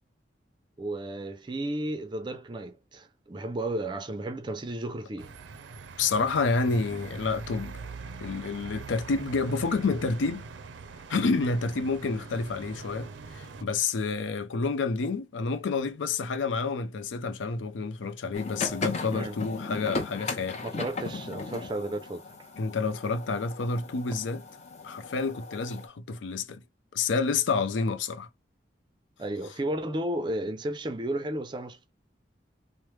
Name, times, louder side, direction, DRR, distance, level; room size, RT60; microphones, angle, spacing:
voice 1, 0.8-5.3 19.1-19.4 20.6-22.2 29.2-31.9, right 1 dB, 25° right, 0.4 m, -33 dB
sound 1, 5.2-13.6, right 4 dB, 85° right, 0.4 m, -42 dB
voice 2, 6.0-7.8 8.2-10.5 11.1-20.6 22.6-24.4 24.8-26.6 26.9-28.3, left 4 dB, 90° left, 0.5 m, -29 dB
sound 2, 18.3-25.9, left 3 dB, 35° left, 0.6 m, -37 dB
3.1 x 2.0 x 3.1 m
head